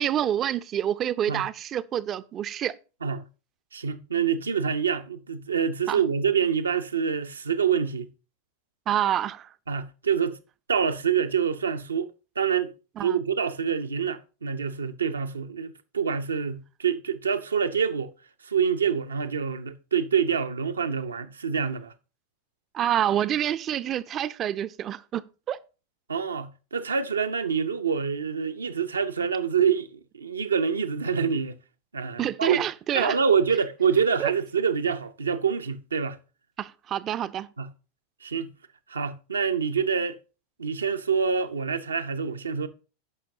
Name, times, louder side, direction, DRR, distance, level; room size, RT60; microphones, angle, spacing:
voice 1, 0.0-2.7 5.9-6.0 8.9-9.5 13.0-13.2 22.7-25.6 32.2-33.2 34.2-34.3 36.6-37.5, right 10 dB, 30° right, 0.5 m, -27 dB
voice 2, 3.7-8.1 9.7-10.4 10.7-12.1 12.4-12.7 13.0-18.1 18.4-21.9 26.1-31.5 31.9-32.6 32.9-36.2 37.6-37.7 38.2-38.5 38.9-40.2 40.6-42.7, right 6 dB, 75° right, 0.7 m, -26 dB
16.5 x 5.8 x 2.7 m
figure-of-eight pair, 90°, 0 cm